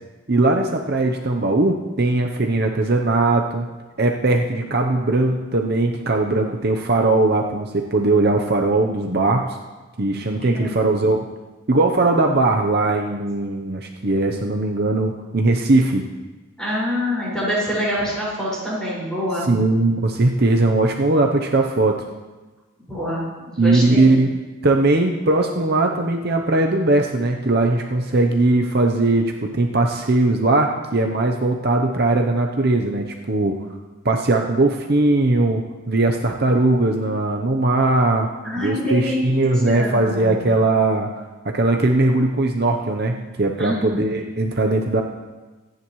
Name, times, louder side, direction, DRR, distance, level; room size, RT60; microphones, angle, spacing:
voice 1, 0.3-3.7 4.0-9.6 10.0-11.3 11.7-16.1 19.4-22.0 23.6-24.3 24.6-33.6 34.0-38.3 38.6-41.1 41.4-45.0, right 2 dB, 45° right, 2 dB, 0.8 m, -19 dB
voice 2, 10.1-10.9 16.6-19.5 22.9-24.1 38.4-40.4 43.6-44.5, equal, 5° left, -8 dB, 5.4 m, -26 dB
25.0 x 10.5 x 3.1 m, 1.2 s
head